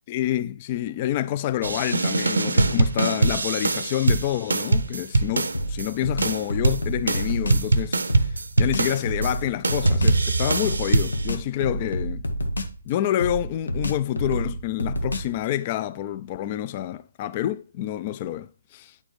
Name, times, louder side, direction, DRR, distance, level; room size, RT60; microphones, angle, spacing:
voice 1, 0.1-8.0 8.6-12.2 12.9-18.9, left 12 dB, 30° left, 0.4 m, -28 dB
sound 1, 1.6-5.9 6.2-9.3 9.6-11.3, right 2 dB, 75° right, 0.6 m, -23 dB
sound 2, 5.5-7.7 8.1-10.2 10.6-12.9 13.2-15.4, equal, 75° left, 1.0 m, -29 dB
9.6 x 4.4 x 3.1 m
figure-of-eight pair, 140°, 0 cm